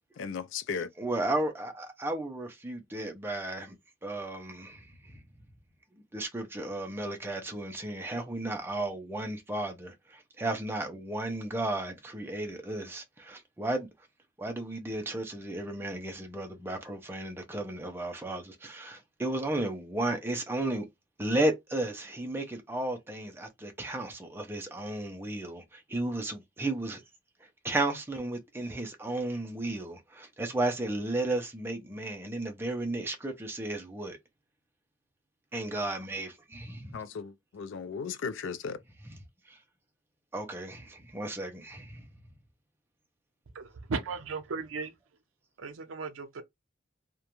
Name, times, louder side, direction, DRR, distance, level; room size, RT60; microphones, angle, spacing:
voice 1, 0.2-0.9 36.9-38.8, left 6 dB, 70° left, 0.4 m, -36 dB
voice 2, 1.0-3.8 4.0-5.2 6.1-13.9 14.4-20.9 21.2-27.0 27.6-34.2 35.5-37.0 39.0-39.2 39.5-39.6 40.3-42.0, right 2 dB, 10° right, 0.4 m, -34 dB
voice 3, 43.5-44.9 45.6-46.4, right 4 dB, 80° right, 0.5 m, -36 dB
2.4 x 2.2 x 2.9 m
head